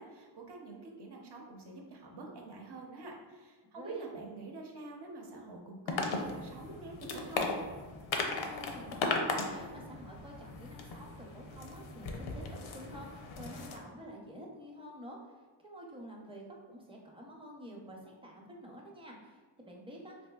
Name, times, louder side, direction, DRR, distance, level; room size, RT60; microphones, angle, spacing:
voice 1, 0.0-7.5, right 3 dB, 60° right, 0 dB, 0.7 m, -46 dB
voice 2, 3.8-4.1 8.5-15.2 15.6-20.3, equal, 10° right, -1 dB, 0.6 m, -49 dB
sound 1, 5.9-13.8, left 3 dB, 85° left, 0.6 m, -37 dB
4.1 x 2.6 x 2.3 m, 1.4 s
wide cardioid pair, 95°, 46 cm